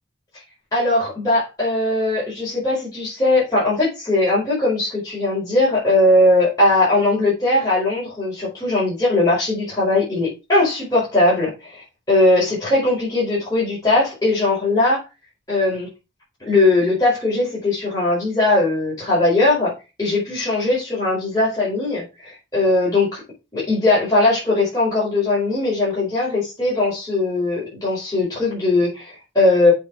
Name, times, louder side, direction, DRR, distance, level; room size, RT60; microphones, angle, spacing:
voice 1, 0.7-15.0 15.5-15.9 16.4-23.2 23.5-29.7, left 2 dB, 20° left, -9 dB, 5.1 m, -19 dB
7.9 x 5.0 x 5.0 m, 0.27 s
head